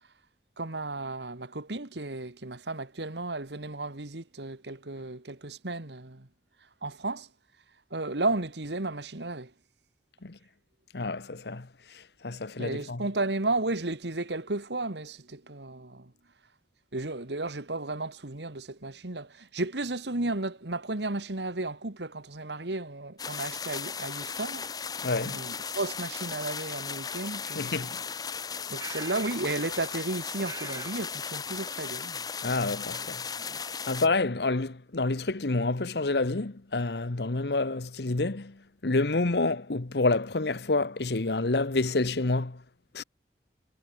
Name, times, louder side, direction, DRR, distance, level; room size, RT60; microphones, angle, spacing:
voice 1, 0.6-6.3 6.8-7.3 7.9-9.5 12.6-16.1 16.9-24.7 25.2-28.0 28.7-32.3 33.4-33.6, right 2 dB, 80° right, 1.9 m, -33 dB
voice 2, 10.9-11.7 12.2-13.0 25.0-25.4 27.5-27.9 32.4-33.2 33.9-38.5 38.8-42.6 42.9-43.0, left 3 dB, 75° left, 1.1 m, -28 dB
sound 1, 23.2-34.1, left 6 dB, 20° left, 0.6 m, -36 dB
sound 2, 27.4-27.5 28.8-29.4 29.7-30.0 30.4-31.0, right 4 dB, 20° right, 1.9 m, -43 dB
head